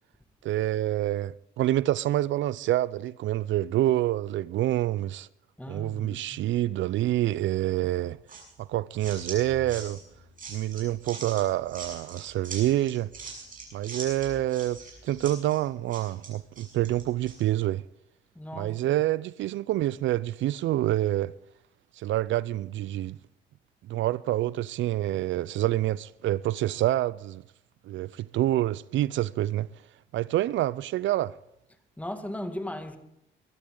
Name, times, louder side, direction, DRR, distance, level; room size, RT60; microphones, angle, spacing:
voice 1, 0.4-5.3 5.7-8.2 8.6-10.0 10.5-13.1 13.7-17.8 18.5-21.3 22.0-23.2 23.9-27.4 27.9-29.7 30.1-31.3, right 14 dB, 70° right, 0.4 m, -27 dB
voice 2, 5.6-6.4 18.4-18.8 32.0-33.0, left 1 dB, 5° left, 2.0 m, -37 dB
sound 1, 8.3-17.4, right 3 dB, 45° right, 6.9 m, -42 dB
23.0 x 12.0 x 3.8 m
cardioid pair, 90°, 20 cm